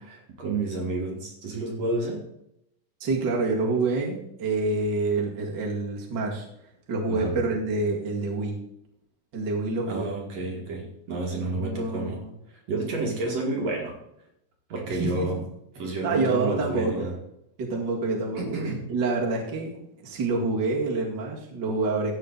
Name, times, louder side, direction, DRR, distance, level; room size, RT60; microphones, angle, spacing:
voice 1, 0.0-2.2 7.1-7.4 9.9-12.2 12.5-14.0 14.7-15.4 15.7-17.2 18.3-18.8, right 2 dB, 55° right, 0 dB, 2.9 m, -30 dB
voice 2, 3.0-6.5 6.9-8.6 9.3-10.1 11.5-12.3 14.9-15.3 16.0-17.1 17.6-18.4 18.9-22.1, right 3 dB, 35° right, -2 dB, 2.3 m, -27 dB
13.5 x 9.0 x 4.0 m, 0.79 s
omnidirectional pair, 3.8 m